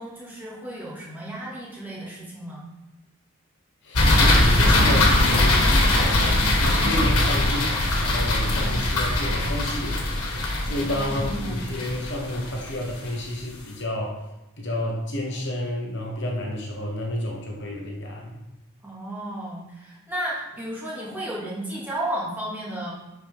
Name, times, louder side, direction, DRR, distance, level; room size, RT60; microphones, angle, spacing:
voice 1, 0.0-2.6 8.4-8.8 10.9-11.6 18.8-22.9, right 1 dB, 10° right, -7 dB, 2.1 m, -33 dB
voice 2, 3.8-10.3 10.6-14.2 14.6-18.4, left 1 dB, 55° left, -1 dB, 1.2 m, -30 dB
sound 1, 3.9-13.1, left 1 dB, 90° left, 1.5 m, -21 dB
11.0 x 4.6 x 3.6 m, 1.0 s
head